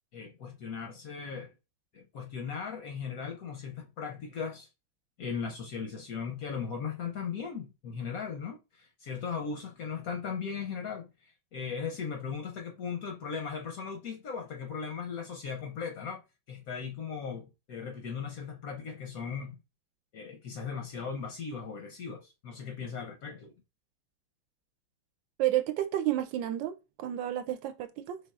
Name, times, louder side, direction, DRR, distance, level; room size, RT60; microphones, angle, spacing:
voice 1, 0.1-1.5 1.9-4.7 5.2-11.1 11.5-16.2 16.5-19.6 20.1-23.5, left 6 dB, 65° left, 0.9 m, -38 dB
voice 2, 25.4-28.2, right 13 dB, 80° right, 1.2 m, -31 dB
5.4 x 3.4 x 2.3 m
omnidirectional pair, 2.1 m